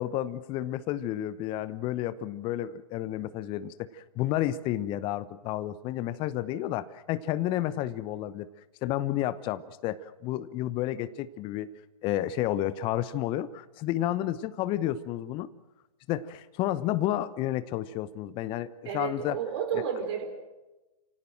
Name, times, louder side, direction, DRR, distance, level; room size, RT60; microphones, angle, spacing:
voice 1, 0.0-8.5 8.8-11.7 12.0-15.5 16.1-19.4 19.7-19.8, left 13 dB, 25° left, 15 dB, 0.9 m, -31 dB
voice 2, 18.8-20.3, right 8 dB, 45° right, 4 dB, 4.6 m, -31 dB
29.0 x 17.5 x 7.7 m, 1.1 s
figure-of-eight pair, 120°, 19 cm